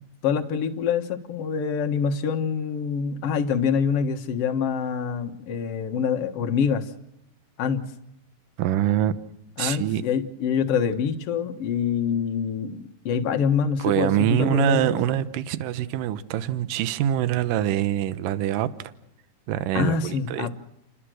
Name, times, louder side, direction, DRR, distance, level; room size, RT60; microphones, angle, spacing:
voice 1, 0.2-6.8 7.6-7.8 9.6-15.3 19.7-20.5, left 6 dB, 50° left, 1.9 m, -25 dB
voice 2, 8.6-9.1 9.6-10.0 13.8-18.7 19.5-20.5, right 12 dB, 70° right, 2.4 m, -24 dB
29.5 x 19.5 x 6.4 m
omnidirectional pair, 4.4 m